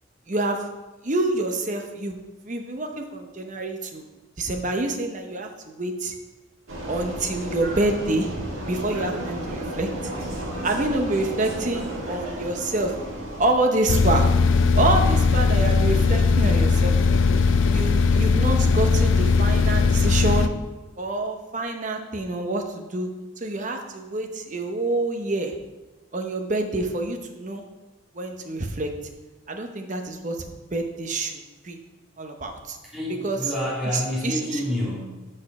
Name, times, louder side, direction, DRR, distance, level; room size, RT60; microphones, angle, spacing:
voice 1, 0.3-0.6 1.0-2.2 2.4-4.1 4.4-6.1 6.9-10.1 10.6-12.9 13.4-14.3 14.8-16.9 17.7-20.5 21.0-23.1 23.4-25.5 26.1-27.6 28.1-28.9 29.5-31.8 32.2-32.8 33.2-33.5 33.9-34.6, right 2 dB, 40° right, 4 dB, 0.7 m, -27 dB
Vehicle, 6.7-13.6, right 1 dB, 90° right, 1.5 m, -33 dB
sound 1, 13.9-20.5, left 4 dB, 70° left, 0.4 m, -19 dB
voice 2, 32.8-35.3, left 1 dB, 5° right, -10 dB, 2.4 m, -28 dB
6.4 x 5.1 x 5.8 m, 1.2 s
head